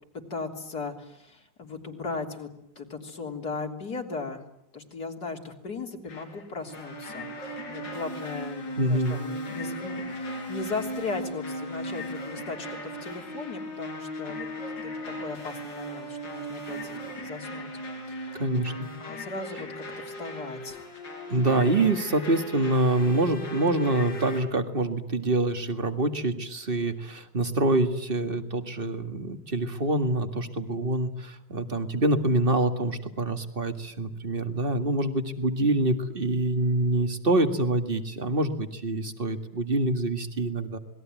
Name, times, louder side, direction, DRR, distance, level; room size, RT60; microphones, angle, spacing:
voice 1, 0.3-2.5 2.8-4.4 4.7-14.5 14.8-17.7 18.1-18.4 19.0-20.8, left 4 dB, 60° left, 3 dB, 3.9 m, -37 dB
sound 1, 6.1-24.4, equal, 90° left, 5.1 m, -37 dB
voice 2, 8.8-9.2 18.3-18.9 21.3-40.8, right 2 dB, 30° right, 8 dB, 2.1 m, -26 dB
27.5 x 21.0 x 9.1 m, 0.78 s
omnidirectional pair, 1.9 m